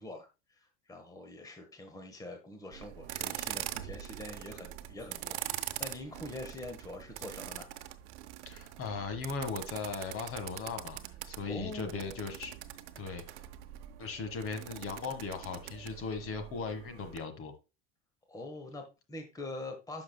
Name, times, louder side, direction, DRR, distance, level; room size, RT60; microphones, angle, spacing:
voice 1, 0.0-7.7 11.4-12.1 18.3-20.0, left 2 dB, 10° left, 1.2 m, -44 dB
sound 1, 2.7-17.2, right 14 dB, 80° right, 0.8 m, -43 dB
voice 2, 8.4-12.6 13.0-13.2 14.0-17.5, left 4 dB, 40° left, 1.6 m, -38 dB
9.8 x 6.1 x 2.2 m
supercardioid pair, 110°, 34 cm